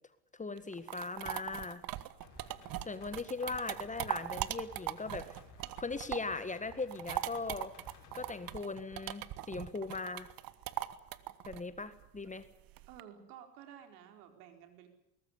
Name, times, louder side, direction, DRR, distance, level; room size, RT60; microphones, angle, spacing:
voice 1, 0.3-1.8 2.8-5.4 5.8-7.7 8.1-10.3 11.5-12.5, left 3 dB, 15° left, 13 dB, 1.8 m, -39 dB
sound 1, 0.6-6.4 6.7-13.0, right 14 dB, 45° right, 1.5 m, -40 dB
sound 2, 2.2-8.5, left 7 dB, 65° left, 5.6 m, -58 dB
voice 2, 12.9-14.9, right 9 dB, 70° right, 6 dB, 4.7 m, -53 dB
22.5 x 19.0 x 8.6 m, 0.81 s
hypercardioid pair, 80°, 47 cm